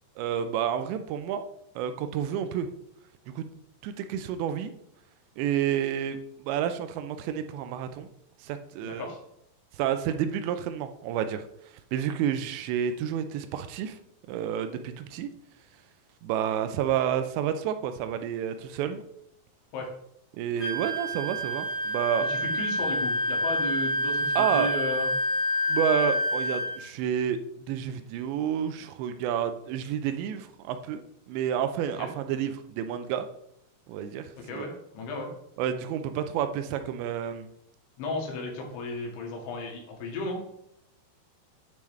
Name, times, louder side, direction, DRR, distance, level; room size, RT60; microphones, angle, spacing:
voice 1, 0.2-1.4 1.8-2.7 3.4-3.5 3.8-4.7 5.4-8.1 8.4-9.1 9.8-11.4 11.9-14.0 14.3-15.3 16.2-19.0 20.4-22.3 24.4-24.7 25.7-27.4 27.7-31.0 31.3-33.3 33.9-34.2 34.5-34.7 35.6-37.5, right 9 dB, 85° right, 9 dB, 2.8 m, -29 dB
voice 2, 8.8-9.2 19.7-19.9 22.2-25.1 32.0-32.1 34.4-35.3 38.0-40.4, left 2 dB, 90° left, 0 dB, 4.4 m, -34 dB
Wind instrument woodwind instrument, 20.6-26.8, equal, 20° left, 1.7 m, -28 dB
9.3 x 7.1 x 3.2 m, 0.75 s
omnidirectional pair, 5.3 m